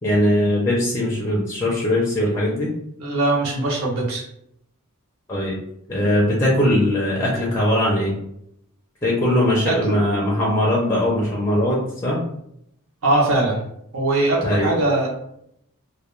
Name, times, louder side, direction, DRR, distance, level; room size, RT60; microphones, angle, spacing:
voice 1, 0.0-2.7 5.3-5.6 5.9-8.1 9.0-12.2 14.4-14.7, left 1 dB, 15° left, -4 dB, 0.5 m, -20 dB
voice 2, 3.0-4.2 9.7-10.0 13.0-13.6 13.9-15.1, right 2 dB, 65° right, -2 dB, 0.7 m, -21 dB
2.3 x 2.1 x 3.0 m, 0.74 s
head